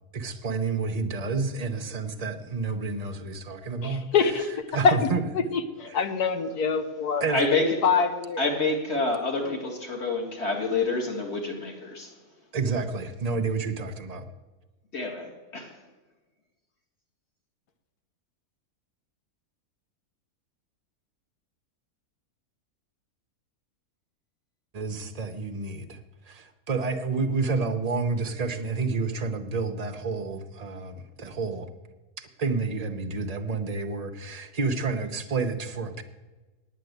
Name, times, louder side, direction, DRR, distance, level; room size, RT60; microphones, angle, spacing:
voice 1, 0.1-4.1 4.7-5.2 5.9-6.0 7.2-7.4 12.5-14.3 24.7-31.7 32.2-36.0, right 4 dB, 40° right, 8 dB, 0.6 m, -29 dB
voice 2, 3.8-5.0 5.5-7.3 7.8-8.4 9.4-9.6, left 5 dB, 80° left, 9 dB, 1.5 m, -25 dB
voice 3, 7.3-8.0 8.4-12.2 14.9-15.8, left 3 dB, 45° left, 1 dB, 2.2 m, -28 dB
9.4 x 8.9 x 7.9 m, 1.2 s
omnidirectional pair, 1.6 m